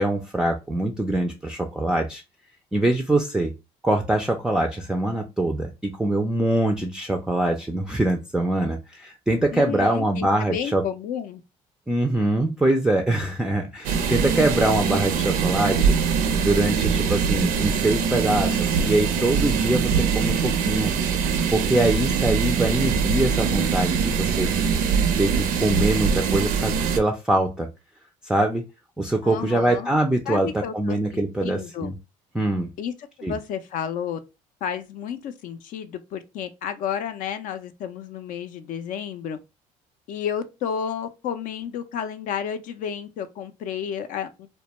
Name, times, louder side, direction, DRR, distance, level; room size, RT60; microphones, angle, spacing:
voice 1, 0.0-2.2 2.7-3.5 3.8-10.8 11.9-16.0 16.4-20.9 21.5-24.5 25.2-27.7 28.2-28.6 29.0-31.9 32.3-32.7 33.2-33.4, right 1 dB, 5° right, 0.3 m, -23 dB
voice 2, 9.5-11.4 29.2-29.9 30.3-31.9 32.8-32.9 33.2-34.2 34.6-39.4 40.1-44.5, left 8 dB, 65° left, 0.4 m, -31 dB
sound 1, 13.8-27.0, right 6 dB, 75° right, 0.4 m, -23 dB
2.1 x 2.1 x 2.9 m
supercardioid pair, 90°, 15 cm